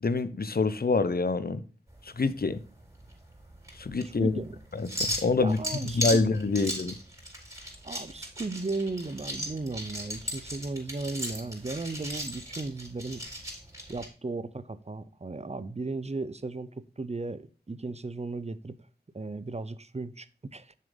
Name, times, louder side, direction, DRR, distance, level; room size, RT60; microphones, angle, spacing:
voice 1, 0.0-1.6 2.0-2.6 3.8-4.4 4.7-5.6 5.9-6.9, left 3 dB, 65° left, 0.8 m, -26 dB
sound 1, 1.9-14.1, equal, 20° right, 4.0 m, -37 dB
voice 2, 4.0-4.5 5.4-6.6 7.8-13.2 13.9-18.8 19.1-20.7, right 3 dB, 40° right, 0.7 m, -36 dB
7.1 x 6.6 x 3.9 m
wide cardioid pair, 45°, 17 cm